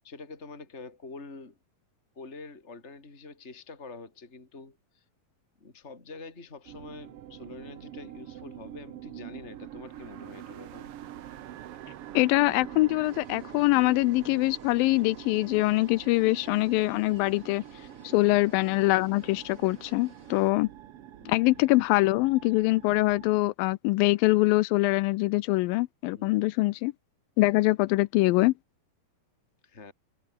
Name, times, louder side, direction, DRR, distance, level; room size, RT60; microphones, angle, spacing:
voice 1, 0.0-1.6 2.2-5.0 5.6-10.9 18.1-18.4 21.2-21.5 26.1-26.4 29.6-29.9, left 3 dB, 20° left, 3.9 m, -46 dB
sound 1, 6.7-23.3, right 12 dB, 85° right, 1.3 m, -45 dB
voice 2, 12.1-17.6 18.1-20.7 21.3-26.9 27.4-28.5, left 20 dB, 80° left, 2.3 m, -24 dB
sound 2, 13.0-20.5, right 2 dB, 20° right, 7.4 m, -55 dB
omnidirectional pair, 4.2 m